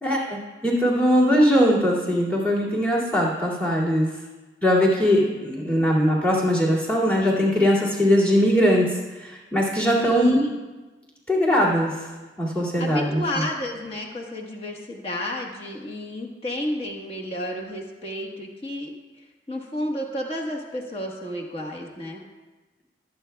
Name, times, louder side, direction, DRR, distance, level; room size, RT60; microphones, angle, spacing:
voice 1, 0.0-4.1 4.6-8.9 9.2-10.4 11.3-12.0 12.4-13.2, equal, 5° left, -6 dB, 2.3 m, -20 dB
voice 2, 10.0-10.6 12.8-18.9 19.5-22.2, left 1 dB, 30° left, -1 dB, 1.3 m, -31 dB
20.5 x 8.2 x 2.3 m, 1.2 s
head